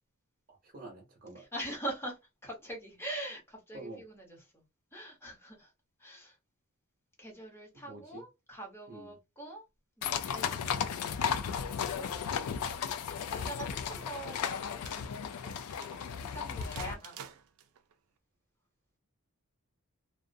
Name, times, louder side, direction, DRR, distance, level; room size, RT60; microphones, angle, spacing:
voice 1, 0.5-1.5 3.7-4.0 7.7-8.2 8.9-9.1, right 2 dB, 40° right, 0.7 m, -47 dB
voice 2, 1.4-4.6 4.9-5.7 6.0-6.4 7.2-9.6 10.0-12.1 12.5-12.6 13.1-15.6 16.1-17.3, right 1 dB, 10° left, 0.9 m, -44 dB
sound 1, 10.0-16.9, left 7 dB, 70° left, 0.4 m, -35 dB
sound 2, 13.1-17.9, right 8 dB, 65° right, 0.4 m, -51 dB
2.4 x 2.0 x 2.5 m
head